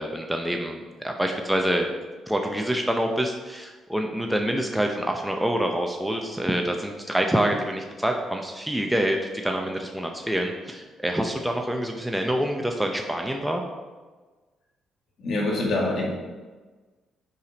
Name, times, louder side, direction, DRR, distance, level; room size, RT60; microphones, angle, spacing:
voice 1, 0.0-1.9 2.3-9.2 9.4-13.6, equal, 5° right, 2 dB, 0.6 m, -26 dB
voice 2, 15.2-16.1, left 2 dB, 65° left, -3 dB, 1.8 m, -25 dB
5.6 x 5.0 x 3.9 m, 1.3 s
cardioid pair, 90°, 0 cm